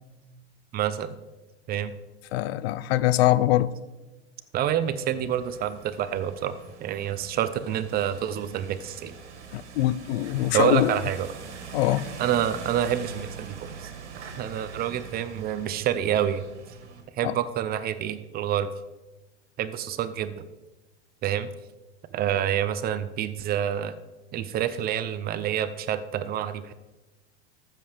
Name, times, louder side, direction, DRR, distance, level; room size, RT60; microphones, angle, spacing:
voice 1, 0.7-1.2 1.7-1.9 4.5-6.5 6.8-9.1 10.5-11.3 12.2-13.9 14.2-16.5 17.2-18.7 19.6-20.5 21.2-21.5 22.1-23.9 24.3-26.7, right 10 dB, 30° right, 0.5 m, -27 dB
voice 2, 2.3-3.7 9.5-10.9 11.7-12.1 17.2-17.3, left 15 dB, 65° left, 0.5 m, -23 dB
sound 1, 4.8-17.0, right 5 dB, 85° right, 1.9 m, -43 dB
13.5 x 7.4 x 3.4 m
hypercardioid pair, 115°, 34 cm